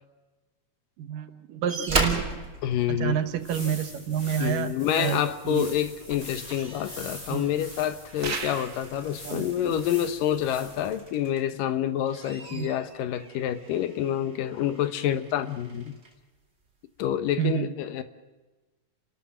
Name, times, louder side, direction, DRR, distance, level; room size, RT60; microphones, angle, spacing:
voice 1, 1.0-2.4 3.0-5.2 5.5-5.7 7.3-7.5 9.2-9.8 12.5-12.7 17.4-17.7, right 9 dB, 80° right, 9 dB, 2.8 m, -29 dB
sound 1, 1.7-3.7 5.2-5.4 5.8-11.6 12.0-16.2 17.1-17.2, right 3 dB, 20° right, 2.4 m, -37 dB
voice 2, 2.6-3.2 4.4-15.9 17.0-18.0, left 10 dB, 80° left, 11 dB, 2.8 m, -28 dB
sound 2, 3.2-11.0, left 1 dB, 50° left, 9.2 m, -44 dB
sound 3, 8.2-8.9, right 5 dB, 45° right, 1.4 m, -34 dB
29.0 x 13.0 x 7.4 m, 1.2 s
omnidirectional pair, 3.9 m